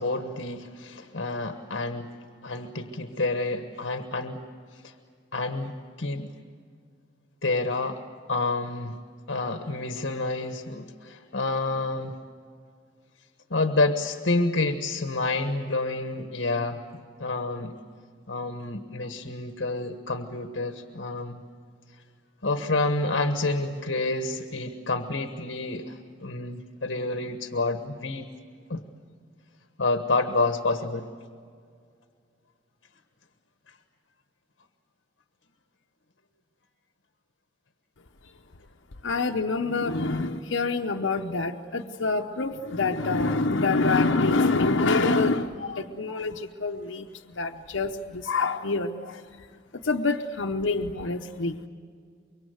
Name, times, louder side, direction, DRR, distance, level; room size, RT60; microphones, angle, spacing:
voice 1, 0.0-2.1 2.4-4.4 4.7-4.9 5.3-6.3 7.4-8.0 8.3-9.0 9.3-12.1 13.5-16.8 17.2-17.7 18.3-21.4 22.4-28.3 28.7-28.8 29.8-31.0, left 2 dB, 70° left, 7 dB, 1.3 m, -28 dB
voice 2, 39.0-49.5 49.8-51.6, left 3 dB, 90° left, 4 dB, 0.9 m, -26 dB
25.0 x 23.5 x 7.9 m, 2.1 s
head